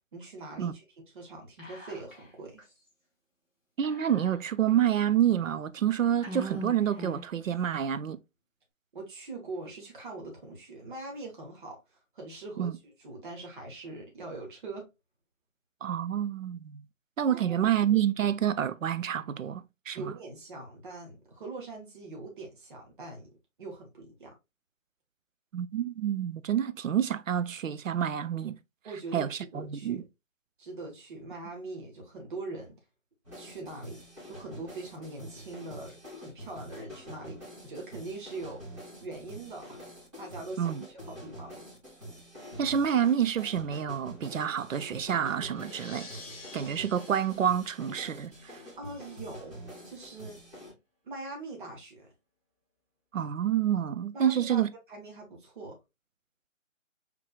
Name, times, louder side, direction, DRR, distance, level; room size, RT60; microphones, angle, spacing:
voice 1, 0.1-0.8 1.1-2.6 8.9-11.8 12.1-14.9 17.3-17.8 19.9-23.3 23.6-24.3 28.8-30.0 30.6-32.8 33.3-38.6 39.0-39.8 40.2-41.7 48.8-49.6 49.9-50.4 51.0-52.1 54.1-54.6 54.9-55.8, right 2 dB, 40° right, 1.4 m, -42 dB
Whispering, 1.6-2.3 2.6-2.7 3.8-4.7 5.3-5.4 6.2-7.4, equal, ahead, 1.6 m, -41 dB
voice 2, 3.8-8.2 12.6-12.7 15.8-16.8 17.2-20.1 25.5-28.6 29.1-30.0 40.6-40.9 42.6-46.1 46.5-48.6 53.1-54.7, right 9 dB, 85° right, 0.6 m, -28 dB
sound 1, 33.2-50.7, equal, 25° right, 2.9 m, -46 dB
sound 2, 44.0-48.9, left 2 dB, 20° left, 2.4 m, -51 dB
4.5 x 3.7 x 2.3 m
hypercardioid pair, 165°, 38 cm